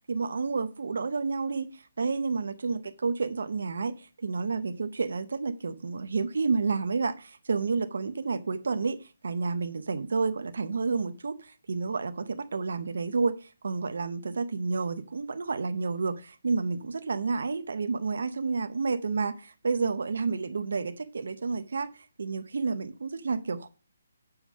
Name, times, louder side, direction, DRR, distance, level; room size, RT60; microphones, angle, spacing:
voice 1, 0.0-21.9 22.2-23.7, right 4 dB, 70° right, 0.7 m, -30 dB
7.2 x 5.0 x 6.2 m
hypercardioid pair, 150°, 0 cm